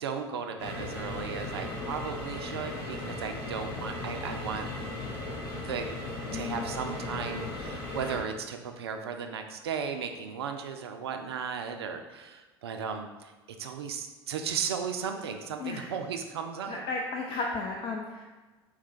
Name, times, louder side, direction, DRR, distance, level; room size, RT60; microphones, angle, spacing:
voice 1, 0.0-4.7 5.5-6.0 6.3-16.8, right 6 dB, 70° right, 5 dB, 0.4 m, -36 dB
sound 1, 0.6-8.2, left 2 dB, 60° left, 1.0 m, -37 dB
voice 2, 6.3-6.7 15.6-15.9 16.7-18.2, left 3 dB, 40° left, 0 dB, 0.4 m, -34 dB
4.4 x 2.1 x 4.2 m, 1.3 s
figure-of-eight pair, 65°, 14 cm